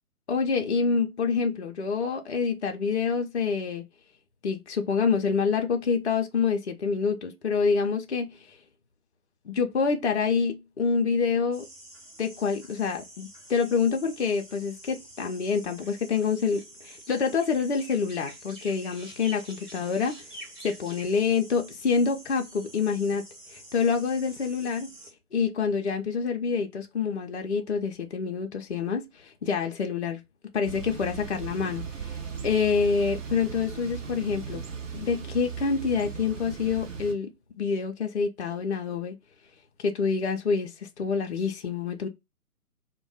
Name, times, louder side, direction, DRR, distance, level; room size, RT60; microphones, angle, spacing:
voice 1, 0.3-3.8 4.4-8.4 9.5-11.6 12.2-20.2 20.6-23.2 23.5-24.9 25.3-30.2 30.5-32.1 32.4-34.6 34.9-37.3 37.6-39.2 39.8-42.1, left 5 dB, 50° left, 0.4 m, -27 dB
sound 1, 11.5-25.1, right 1 dB, 15° right, 0.8 m, -47 dB
Thunder / Bicycle, 30.6-37.1, right 6 dB, 55° right, 0.8 m, -37 dB
2.2 x 2.1 x 3.8 m
figure-of-eight pair, 135°, 46 cm